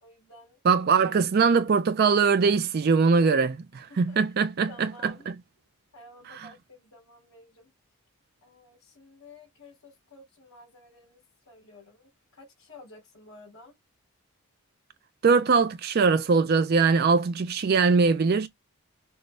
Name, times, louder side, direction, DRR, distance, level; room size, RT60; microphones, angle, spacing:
voice 1, 0.0-0.6 3.9-4.2 4.7-5.3 5.9-7.7 8.4-11.2 11.4-13.7, left 2 dB, 65° left, 3.2 m, -52 dB
voice 2, 0.6-5.1 15.2-18.5, right 5 dB, 45° right, 0.4 m, -22 dB
6.4 x 2.2 x 3.2 m
head